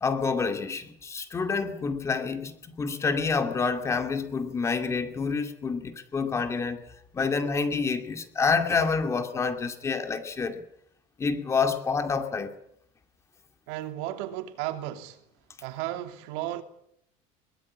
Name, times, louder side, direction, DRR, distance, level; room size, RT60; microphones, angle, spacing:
voice 1, 0.0-6.8 7.1-10.6 11.2-12.5, left 5 dB, 20° left, 2.4 m, -28 dB
voice 2, 13.7-15.2 15.6-16.6, right 14 dB, 80° right, 2.7 m, -34 dB
22.5 x 20.0 x 8.7 m
cardioid pair, 160°, 15 cm